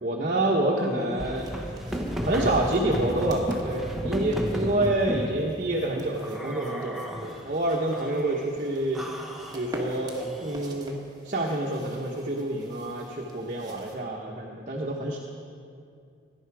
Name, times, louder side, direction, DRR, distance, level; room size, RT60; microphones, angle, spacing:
voice 1, 0.0-1.5 2.2-9.0 9.5-11.0 11.2-15.2, right 1 dB, 45° right, -1 dB, 1.1 m, -27 dB
sound 1, 0.9-5.3 6.2-7.5 7.9-8.5 8.9-10.8, equal, ahead, 1.2 m, -33 dB
sound 2, 1.3-14.0, right 1 dB, 20° right, 1.6 m, -47 dB
17.5 x 11.0 x 4.8 m, 2.4 s
head